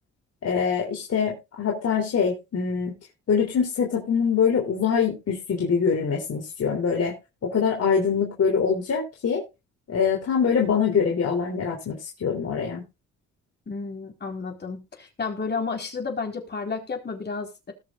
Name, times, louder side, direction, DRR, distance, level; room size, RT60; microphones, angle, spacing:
voice 1, 0.4-2.9 3.3-7.1 7.5-9.4 9.9-12.8, left 6 dB, 55° left, 0 dB, 3.5 m, -24 dB
voice 2, 13.7-17.7, left 4 dB, 35° left, 3 dB, 4.4 m, -32 dB
20.0 x 6.7 x 2.5 m, 0.26 s
cardioid pair, 90°, 30 cm